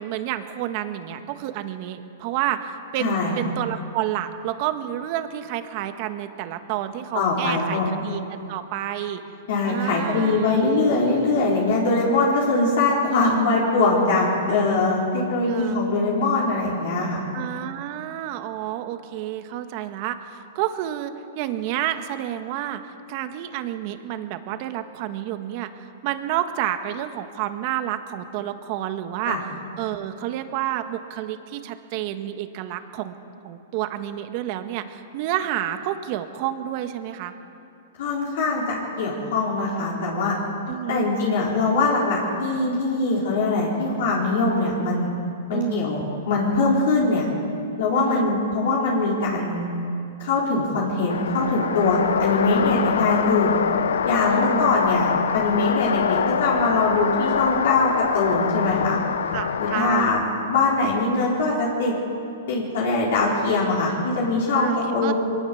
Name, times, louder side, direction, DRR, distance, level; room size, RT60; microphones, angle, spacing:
voice 1, 0.0-9.2 9.7-10.7 13.1-13.6 15.5-15.8 17.3-22.8 23.1-29.5 29.8-33.1 33.4-37.3 40.7-41.1 45.5-45.9 48.0-48.3 54.3-54.7 59.3-60.1 64.5-65.1, right 12 dB, 40° right, 8 dB, 1.5 m, -30 dB
voice 2, 3.0-3.4 7.1-7.9 9.5-17.2 29.3-29.4 38.0-40.4 40.9-45.1 45.5-47.3 47.8-49.6 50.2-53.5 54.0-55.1 55.3-59.0 59.6-61.9 62.5-65.1, left 3 dB, 60° left, -4 dB, 4.6 m, -22 dB
sound 1, 51.1-60.0, left 7 dB, 85° left, 1.0 m, -25 dB
23.0 x 18.5 x 7.2 m, 2.7 s
hypercardioid pair, 150°, 0 cm